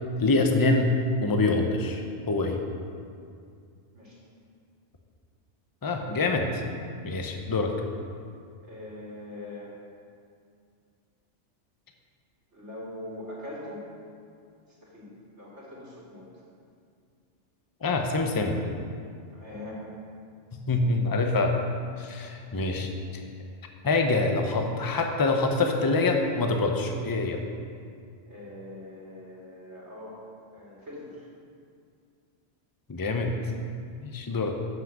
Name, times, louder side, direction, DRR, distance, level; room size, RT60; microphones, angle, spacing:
voice 1, 0.2-0.9 1.2-2.6 5.8-6.6 7.0-7.7 17.8-18.6 20.5-21.6 22.0-23.2 23.8-27.4 32.9-33.4 34.0-34.6, left 3 dB, 25° left, 3 dB, 0.6 m, -25 dB
voice 2, 8.6-9.7 12.5-13.8 14.8-15.1 15.4-16.3 19.3-19.8 28.3-30.2 30.5-31.3, left 1 dB, 70° right, -7 dB, 2.8 m, -42 dB
7.5 x 6.3 x 7.4 m, 2.3 s
omnidirectional pair, 1.2 m